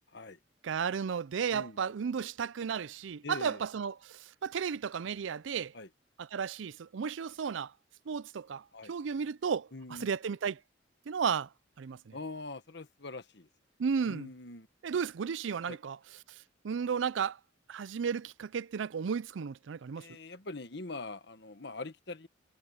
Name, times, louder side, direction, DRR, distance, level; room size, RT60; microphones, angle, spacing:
voice 1, 0.6-5.7 6.2-7.7 8.1-10.6 11.1-11.5 11.8-12.2 13.8-14.3 14.8-16.0 16.6-17.4 17.7-20.1, right 6 dB, 75° right, 0.4 m, -34 dB
voice 2, 1.5-1.8 3.2-3.6 5.7-5.9 8.7-8.9 9.7-10.1 12.1-13.5 14.0-14.7 15.7-15.8 20.0-22.3, left 2 dB, 60° left, 1.4 m, -43 dB
head